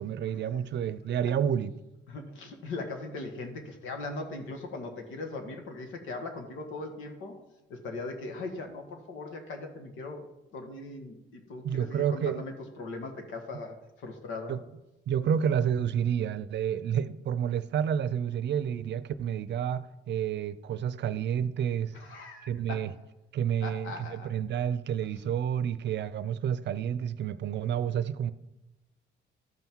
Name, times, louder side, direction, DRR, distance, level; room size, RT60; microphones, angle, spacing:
voice 1, 0.0-1.7 11.6-12.4 14.5-14.6 15.1-21.9 22.4-22.9 23.3-28.3, right 8 dB, 65° right, 0.6 m, -29 dB
voice 2, 2.1-7.4 7.7-10.3 10.5-14.5 15.2-15.3 21.9-22.9 23.6-24.3, left 3 dB, 85° left, 1.6 m, -39 dB
13.0 x 5.6 x 4.6 m
cardioid pair, 90°, 20 cm